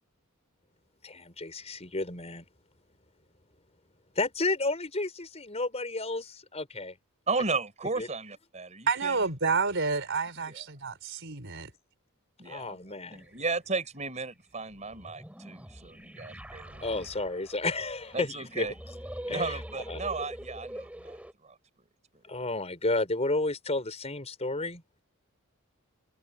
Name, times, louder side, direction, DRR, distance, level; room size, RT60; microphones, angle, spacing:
voice 1, 1.0-2.5 4.1-6.9 8.0-8.1 12.4-13.3 16.8-18.7 19.3-19.6 19.9-20.0 22.3-25.0, left 2 dB, 30° left, 5.0 m, -32 dB
voice 2, 7.3-9.3 10.4-10.6 12.4-17.1 18.1-18.7 19.3-21.6, right 3 dB, 30° right, 4.3 m, -35 dB
voice 3, 8.9-11.7, right 4 dB, 55° right, 4.2 m, -29 dB
sound 1, 13.1-13.4 14.6-21.3, equal, 5° right, 4.3 m, -43 dB
head